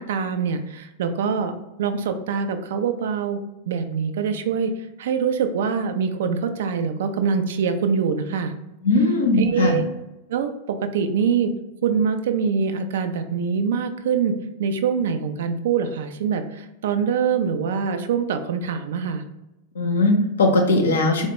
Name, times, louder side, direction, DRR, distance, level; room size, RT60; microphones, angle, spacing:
voice 1, 0.0-3.4 3.7-4.7 5.0-8.5 9.4-9.8 10.3-11.5 11.8-19.2, right 6 dB, 60° right, 8 dB, 0.3 m, -24 dB
voice 2, 8.8-9.8 19.7-21.3, left 2 dB, 65° left, 2 dB, 0.6 m, -19 dB
4.1 x 2.1 x 2.9 m, 0.97 s
figure-of-eight pair, 90°, 0 cm